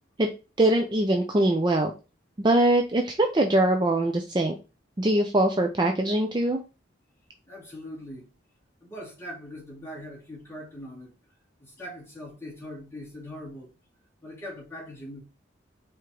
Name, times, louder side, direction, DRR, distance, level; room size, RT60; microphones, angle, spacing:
voice 1, 0.6-1.9 2.4-4.5 5.0-6.6, right 1 dB, 25° right, 0.5 m, -22 dB
voice 2, 7.5-8.3 8.8-11.1 11.6-13.7 14.2-15.2, equal, 15° left, 2.3 m, -41 dB
4.8 x 3.5 x 3.0 m
head